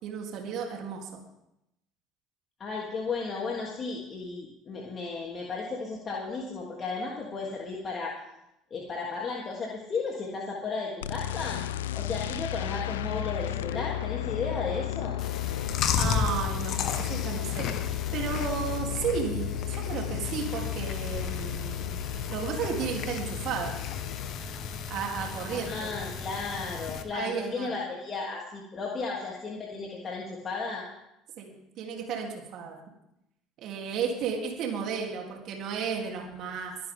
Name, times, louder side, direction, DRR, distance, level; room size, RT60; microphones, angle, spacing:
voice 1, 0.0-1.2 16.0-17.7 18.1-22.0 22.3-23.8 24.9-25.9 27.1-27.7 31.4-32.8 33.6-36.8, right 6 dB, 55° right, 1 dB, 3.6 m, -33 dB
voice 2, 2.6-8.1 8.7-11.6 11.9-15.2 25.5-30.8, left 4 dB, 40° left, -3 dB, 3.4 m, -34 dB
sound 1, 11.0-24.3, left 13 dB, 80° left, 0.5 m, -34 dB
Chewing mastication, 15.2-27.0, left 6 dB, 55° left, 1.7 m, -34 dB
24.0 x 11.5 x 3.9 m, 0.85 s
hypercardioid pair, 65°, 0 cm